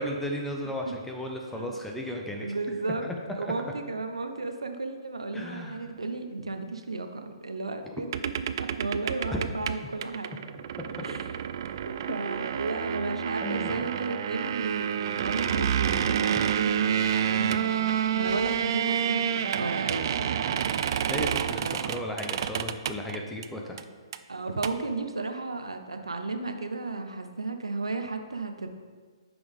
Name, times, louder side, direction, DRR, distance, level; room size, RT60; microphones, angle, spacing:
voice 1, 0.0-2.5 5.3-5.8 9.3-9.4 13.4-13.9 21.1-23.8, equal, 5° left, 1 dB, 0.7 m, -34 dB
voice 2, 2.4-3.1 3.4-8.3 8.6-10.4 11.0-11.3 11.9-21.2 21.6-21.9 23.0-23.2 24.3-28.7, right 3 dB, 85° right, 7 dB, 0.7 m, -34 dB
sound 1, 8.1-23.4 23.8-23.9 24.1-24.2 24.5-24.7, right 9 dB, 50° right, 0.3 m, -29 dB
8.8 x 6.1 x 3.5 m, 1.5 s
figure-of-eight pair, 130°, 3 cm